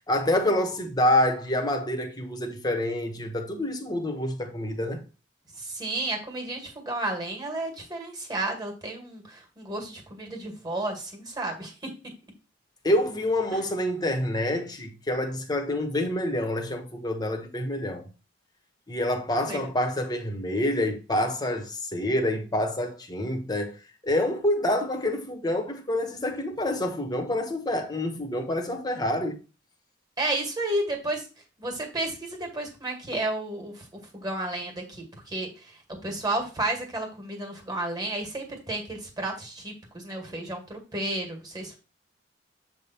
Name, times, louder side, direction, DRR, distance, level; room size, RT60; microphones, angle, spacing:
voice 1, 0.1-5.0 12.8-18.1 18.9-23.8 24.0-29.4, left 1 dB, 20° left, 1.1 m, -27 dB
voice 2, 5.6-11.9 13.5-13.6 19.4-19.6 30.2-31.2 31.6-33.8 34.1-35.5 36.0-41.8, right 2 dB, 20° right, 2.0 m, -32 dB
7.7 x 3.5 x 4.3 m
head